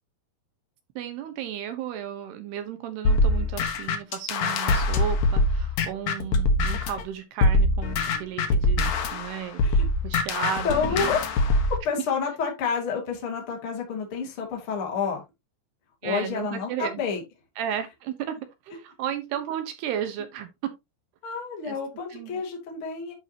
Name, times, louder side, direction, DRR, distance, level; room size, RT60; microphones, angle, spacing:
voice 1, 1.0-9.6 10.0-11.1 16.0-17.0 17.6-20.5 21.6-21.8 22.1-22.4, right 9 dB, 70° right, 2.9 m, -34 dB
sound 1, 3.0-7.0 7.4-11.8, left 2 dB, 75° left, 1.7 m, -23 dB
voice 2, 10.6-11.2 11.8-15.2 16.0-17.2 21.2-23.1, left 5 dB, 35° left, 2.8 m, -29 dB
11.0 x 5.5 x 2.9 m
omnidirectional pair, 5.2 m